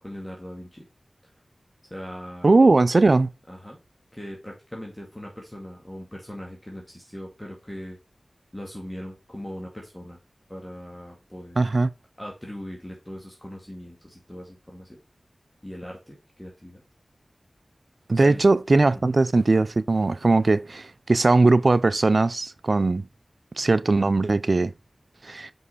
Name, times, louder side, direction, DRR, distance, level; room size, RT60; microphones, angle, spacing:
voice 1, 0.0-0.9 1.8-2.5 3.5-3.8 4.1-8.0 8.5-10.2 10.5-11.6 12.2-15.0 15.6-16.8 18.1-18.4 19.1-19.2, equal, 15° left, 2.0 m, -39 dB
voice 2, 2.4-3.3 11.6-11.9 18.1-23.1 23.6-24.7 25.2-25.5, right 3 dB, 60° right, 0.4 m, -19 dB
5.4 x 5.4 x 4.0 m
cardioid pair, 40°, 0 cm